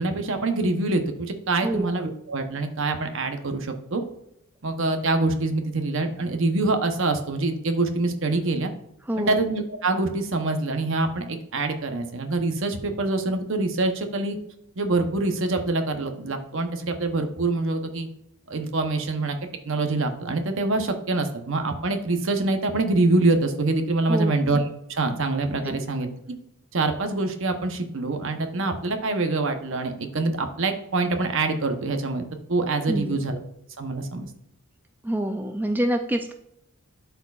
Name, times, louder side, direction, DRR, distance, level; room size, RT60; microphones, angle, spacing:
voice 1, 0.0-4.0 4.6-8.7 9.2-14.4 14.8-18.1 18.5-19.4 19.7-26.4 26.7-33.4 33.8-34.3, right 2 dB, 60° right, 6 dB, 0.9 m, -25 dB
voice 2, 32.9-33.2 35.0-36.3, right 1 dB, 10° right, 5 dB, 0.4 m, -26 dB
12.0 x 4.5 x 2.4 m, 0.79 s
head